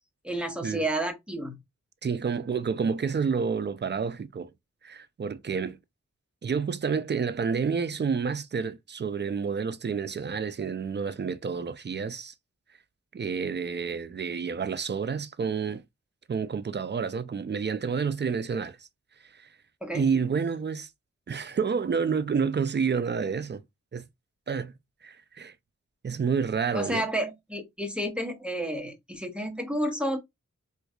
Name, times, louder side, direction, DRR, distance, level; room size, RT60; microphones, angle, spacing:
voice 1, 0.2-1.5 19.8-20.1 26.7-30.2, right 1 dB, 5° right, 0.8 m, -31 dB
voice 2, 2.0-4.5 4.8-5.8 6.4-12.3 13.1-15.8 16.3-18.8 19.3-19.4 19.9-20.9 21.3-23.6 23.9-24.0 24.5-24.7 25.0-25.5 26.0-27.0, right 6 dB, 35° right, 0.4 m, -29 dB
4.5 x 2.6 x 2.3 m
wide cardioid pair, 90°, 30 cm